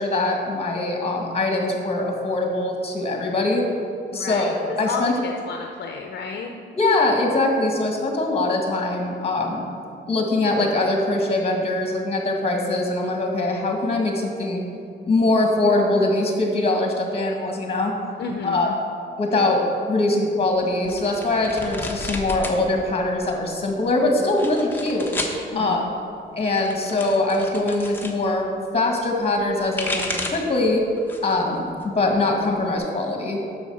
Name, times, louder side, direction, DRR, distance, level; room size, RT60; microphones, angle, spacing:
voice 1, 0.0-3.7 4.1-5.1 6.7-9.6 10.1-14.6 15.0-17.9 18.4-18.7 19.2-19.6 19.9-25.1 25.5-25.8 26.4-30.9 31.2-33.4, left 2 dB, 30° left, 1 dB, 1.7 m, -22 dB
voice 2, 4.1-4.5 4.8-6.5 18.2-18.7 25.5-25.9, left 4 dB, 60° left, 3 dB, 0.7 m, -31 dB
sound 1, 20.8-22.6 22.9-23.6 24.2-25.4 26.4-28.2 29.4-30.5 31.0-31.4 31.8-32.8, left 2 dB, 10° left, 1.1 m, -32 dB
7.9 x 6.4 x 6.3 m, 2.5 s
cardioid pair, 125°, 19 cm